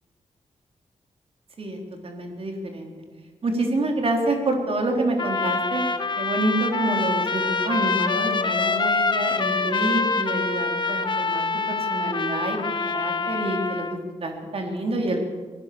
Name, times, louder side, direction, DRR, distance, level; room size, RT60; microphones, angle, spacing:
voice 1, 1.6-2.9 3.4-5.8 6.2-15.2, right 1 dB, 55° right, 2 dB, 4.5 m, -27 dB
Trumpet, 5.2-14.0, left 4 dB, 40° left, 1.5 m, -25 dB
24.5 x 18.5 x 7.2 m, 1.4 s
wide cardioid pair, 110°, 12 cm